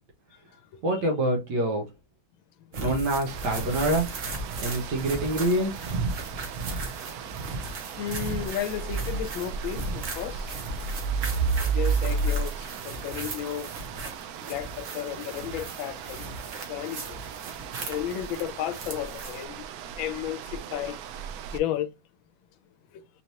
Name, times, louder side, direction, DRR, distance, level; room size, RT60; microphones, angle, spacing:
voice 1, 0.8-1.8 2.8-4.1 4.6-5.8, right 1 dB, 65° right, 1.5 m, -26 dB
sound 1, 2.7-19.4, right 3 dB, 50° right, 1.2 m, -37 dB
sound 2, 3.3-21.6, right 5 dB, 80° right, 0.8 m, -34 dB
voice 2, 8.0-10.6 11.6-13.7 14.5-16.3 16.7-17.2 17.9-19.6 20.0-21.0 21.5-21.9 22.9-23.0, left 11 dB, 85° left, 1.4 m, -33 dB
4.1 x 3.2 x 2.8 m
omnidirectional pair, 2.1 m